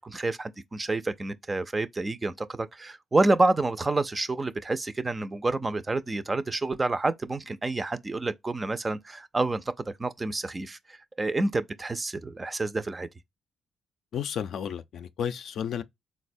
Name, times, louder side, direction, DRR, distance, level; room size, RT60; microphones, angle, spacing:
voice 1, 0.0-13.1, right 2 dB, 25° right, 0.4 m, -28 dB
voice 2, 14.1-15.8, left 8 dB, 65° left, 0.4 m, -32 dB
4.0 x 2.1 x 2.5 m
cardioid pair, 90°, 0 cm